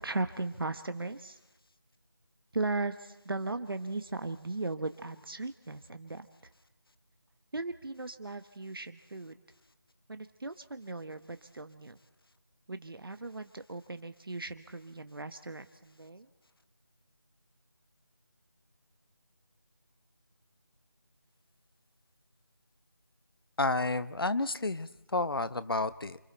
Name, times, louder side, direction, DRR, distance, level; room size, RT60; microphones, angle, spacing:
voice 1, 0.0-1.4 2.5-6.3 7.5-9.3 10.1-12.0 12.7-16.3, right 2 dB, 65° right, 9 dB, 1.1 m, -37 dB
voice 2, 23.6-26.2, left 2 dB, 70° left, 14 dB, 1.0 m, -31 dB
28.5 x 26.0 x 4.4 m, 0.94 s
figure-of-eight pair, 170°, 13 cm